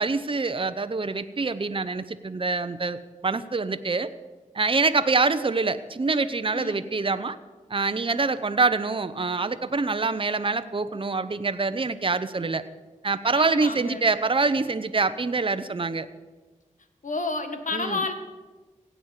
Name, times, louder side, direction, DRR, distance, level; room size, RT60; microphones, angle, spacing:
voice 1, 0.0-4.1 4.5-7.4 7.7-12.6 13.0-16.1 17.7-18.0, right 3 dB, 40° right, 11 dB, 0.8 m, -25 dB
voice 2, 13.3-14.1 17.0-18.1, left 3 dB, 70° left, 7 dB, 1.7 m, -30 dB
16.5 x 9.2 x 8.2 m, 1.3 s
wide cardioid pair, 60°, 14 cm